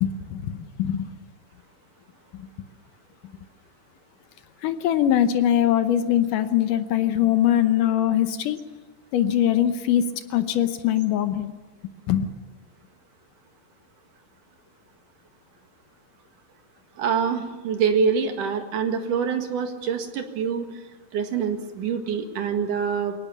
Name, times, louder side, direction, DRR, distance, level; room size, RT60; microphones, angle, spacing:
voice 1, 0.0-1.1 2.3-2.5 4.6-8.6 9.1-10.0 10.3-11.5 12.1-12.3, left 11 dB, 70° left, 9 dB, 2.1 m, -22 dB
voice 2, 17.0-20.7 21.1-23.1, right 6 dB, 60° right, 5 dB, 3.0 m, -25 dB
22.5 x 18.5 x 7.3 m, 1.3 s
omnidirectional pair, 4.7 m